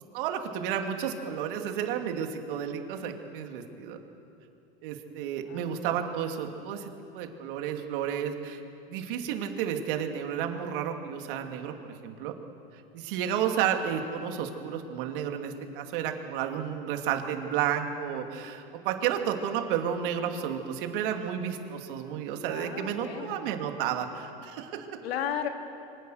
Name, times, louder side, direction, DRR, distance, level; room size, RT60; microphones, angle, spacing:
voice 1, 0.1-4.0 4.8-8.6 8.9-12.3 12.9-24.9, right 9 dB, 60° right, 4 dB, 2.7 m, -32 dB
voice 2, 5.5-5.8 22.5-23.5 25.0-25.5, left 8 dB, 85° left, 4 dB, 2.9 m, -35 dB
26.5 x 24.5 x 6.5 m, 2.8 s
supercardioid pair, 150°, 30 cm